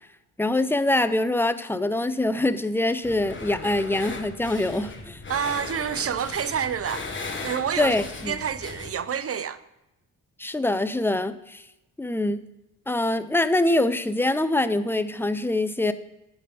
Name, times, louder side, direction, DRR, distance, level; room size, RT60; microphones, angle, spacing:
voice 1, 0.4-5.2 7.8-8.4 10.4-11.6 12.0-12.4 12.9-15.9, left 2 dB, 5° left, 0.5 m, -24 dB
sound 1, 3.0-8.9, left 3 dB, 30° left, 1.6 m, -37 dB
voice 2, 5.3-7.1 7.4-7.9 8.3-9.6, right 8 dB, 40° right, 0.5 m, -28 dB
8.4 x 4.3 x 5.1 m
hypercardioid pair, 50°, 39 cm